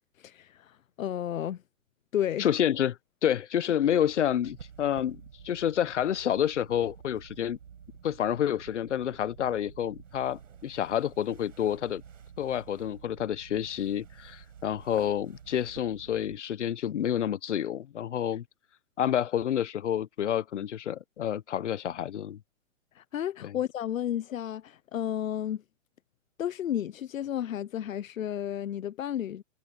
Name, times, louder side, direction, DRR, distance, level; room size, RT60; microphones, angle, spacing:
voice 1, 0.2-1.6 2.1-2.5 22.9-25.6 26.4-29.4, left 10 dB, 85° left, 0.9 m, -32 dB
voice 2, 2.4-7.6 8.0-12.0 12.4-18.4 19.0-22.4 23.4-23.5, left 10 dB, 60° left, 0.9 m, -29 dB
sound 1, 3.8-16.4, right 7 dB, 70° right, 5.9 m, -51 dB
hypercardioid pair, 180°, 39 cm